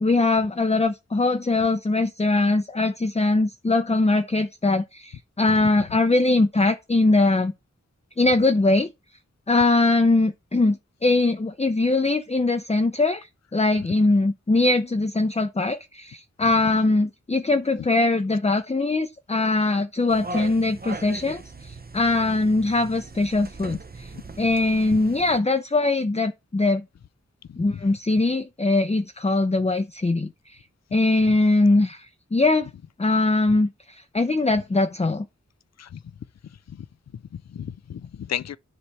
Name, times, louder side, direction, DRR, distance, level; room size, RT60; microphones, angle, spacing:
voice 1, 0.0-7.5 8.2-8.9 9.5-24.1 24.4-26.8 27.6-30.6 30.9-32.7 33.0-35.2, left 2 dB, 20° left, 0.7 m, -22 dB
sound 1, 20.1-25.4, right 3 dB, 30° right, 0.8 m, -39 dB
voice 2, 37.1-38.6, left 9 dB, 65° left, 0.5 m, -35 dB
9.8 x 3.3 x 5.7 m
wide cardioid pair, 55°, 29 cm